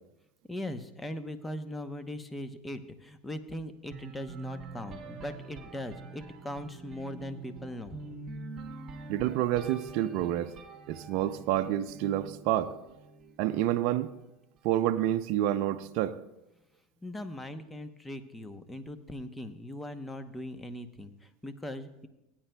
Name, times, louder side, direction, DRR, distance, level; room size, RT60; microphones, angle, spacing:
voice 1, 0.5-8.0 17.0-22.1, left 1 dB, 10° left, 0.8 m, -40 dB
sound 1, 3.9-13.7, right 4 dB, 35° right, 1.4 m, -45 dB
voice 2, 9.1-10.5 10.9-12.7 13.4-14.1 14.6-16.2, right 12 dB, 60° right, 0.5 m, -28 dB
19.0 x 8.9 x 2.3 m
supercardioid pair, 105°, 0 cm